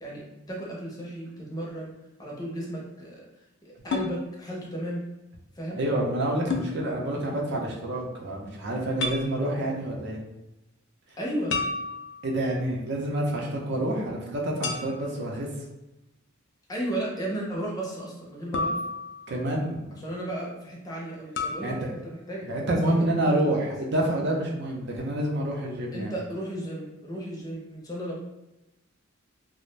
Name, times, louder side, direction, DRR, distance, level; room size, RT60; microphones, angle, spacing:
voice 1, 0.0-3.2 3.6-5.0 5.6-5.8 11.2-11.6 16.7-18.7 20.0-22.4 23.2-23.4 25.9-28.2, right 1 dB, 20° left, -3 dB, 0.6 m, -34 dB
sound 1, 3.9-4.1 6.5-6.7 9.0-9.3 11.5-12.4 14.6-15.2 18.5-19.5 21.4-21.7, left 3 dB, 60° left, 0.4 m, -31 dB
voice 2, 5.7-10.2 12.2-15.5 19.3-19.8 21.6-22.0 22.4-26.1, right 1 dB, 60° right, -1 dB, 0.6 m, -28 dB
2.5 x 2.0 x 3.1 m, 0.97 s
head